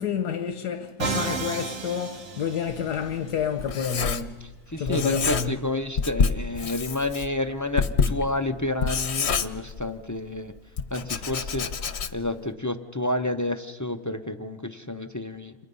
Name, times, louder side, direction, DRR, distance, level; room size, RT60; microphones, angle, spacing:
voice 1, 0.0-4.3 4.8-5.5, left 7 dB, 85° left, 1.7 m, -29 dB
Musical instrument, 1.0-3.1, right 4 dB, 50° right, 1.8 m, -31 dB
Writing, 2.7-4.6 4.9-5.7 6.0-10.1 10.8-12.4, left 5 dB, 50° left, 1.1 m, -28 dB
voice 2, 4.7-10.5 10.9-11.7 12.1-15.5, left 2 dB, 20° left, 0.4 m, -29 dB
30.0 x 27.5 x 5.5 m
omnidirectional pair, 1.7 m